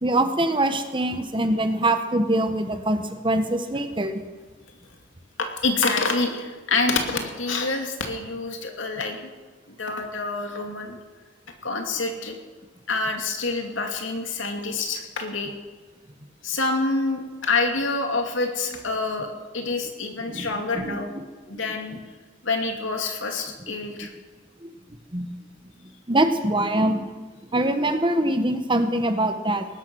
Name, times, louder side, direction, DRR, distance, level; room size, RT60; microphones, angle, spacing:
voice 1, 0.0-4.2 20.3-20.5 20.7-21.0 25.1-25.3 26.1-27.0 27.5-29.7, right 1 dB, 25° right, 8 dB, 1.2 m, -23 dB
voice 2, 5.6-9.3 9.8-11.0 11.6-12.4 12.9-15.5 16.4-21.1 21.5-22.0 22.4-24.1, left 3 dB, 80° left, 3 dB, 2.6 m, -27 dB
19.5 x 11.5 x 6.2 m, 1.3 s
head